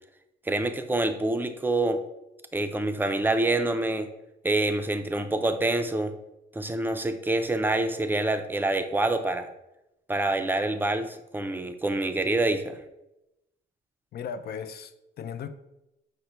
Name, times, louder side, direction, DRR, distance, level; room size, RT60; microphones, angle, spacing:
voice 1, 0.5-2.0 2.5-4.1 4.4-6.1 6.5-9.5 10.1-12.8, right 2 dB, 10° right, 8 dB, 0.5 m, -26 dB
voice 2, 14.1-15.5, left 7 dB, 55° left, 9 dB, 0.4 m, -37 dB
5.3 x 2.2 x 4.4 m, 0.92 s
cardioid pair, 90°, 20 cm